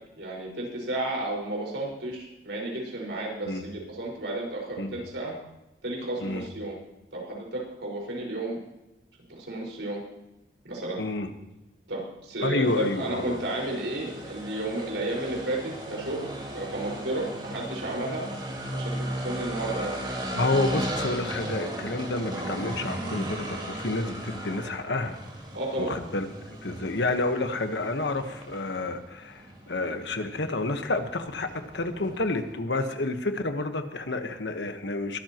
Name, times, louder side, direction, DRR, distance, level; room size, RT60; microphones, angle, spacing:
voice 1, 0.2-5.3 5.8-6.8 7.1-8.6 9.3-10.0 10.6-11.0 11.9-18.2 18.7-20.0 25.5-25.9, right 2 dB, 85° right, -2 dB, 5.2 m, -32 dB
voice 2, 11.0-11.3 12.4-13.4 20.3-25.2 25.8-26.3 26.6-35.2, left 2 dB, 80° left, 7 dB, 1.3 m, -29 dB
sound 1, 12.6-32.5, right 1 dB, 25° right, 4.2 m, -37 dB
22.5 x 13.0 x 3.0 m, 0.95 s
head